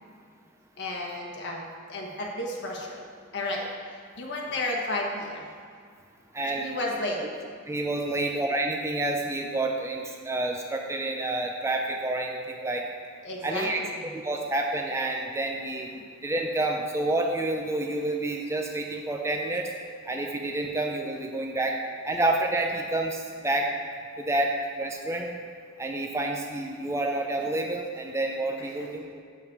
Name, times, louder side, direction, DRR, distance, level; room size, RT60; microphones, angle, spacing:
voice 1, 0.8-3.1 3.3-3.7 4.2-5.5 6.6-7.2 13.2-14.1 15.9-16.0 28.6-28.9, left 2 dB, 55° left, -1 dB, 1.4 m, -32 dB
voice 2, 6.3-6.8 7.7-12.8 13.4-13.8 14.1-15.9 16.2-19.7 20.1-21.8 22.0-23.7 24.2-25.3 25.8-29.2, right 2 dB, 15° right, 1 dB, 0.5 m, -29 dB
7.9 x 7.0 x 4.7 m, 2.1 s
head